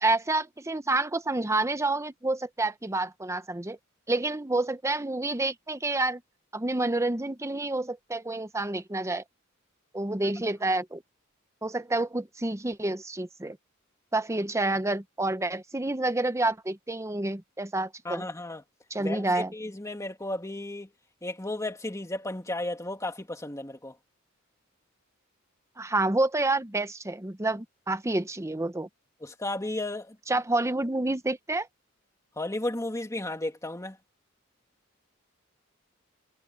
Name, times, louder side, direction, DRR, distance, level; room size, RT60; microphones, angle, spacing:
voice 1, 0.0-3.8 4.1-6.2 6.5-9.2 9.9-11.0 11.6-13.6 14.1-18.3 18.9-19.5 25.8-28.9 30.3-31.7, right 2 dB, 15° right, 0.8 m, -28 dB
voice 2, 18.0-18.6 19.0-20.9 21.2-23.9 29.2-30.2 32.4-34.0, left 1 dB, 15° left, 2.4 m, -34 dB
head